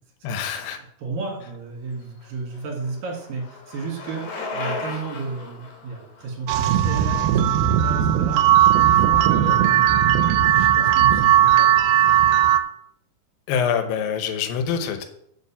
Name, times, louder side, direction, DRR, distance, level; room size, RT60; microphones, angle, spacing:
voice 1, 0.2-0.8 13.5-15.0, left 7 dB, 80° left, 8 dB, 2.6 m, -25 dB
voice 2, 1.0-8.5 8.9-9.8 10.4-12.1, right 4 dB, 70° right, 0 dB, 3.7 m, -33 dB
Bicycle, 2.0-8.0, left 3 dB, 55° left, 2.1 m, -36 dB
sound 1, 6.5-12.6, right 11 dB, 90° right, 2.5 m, -17 dB
8.2 x 5.0 x 7.1 m, 0.74 s
omnidirectional pair, 4.2 m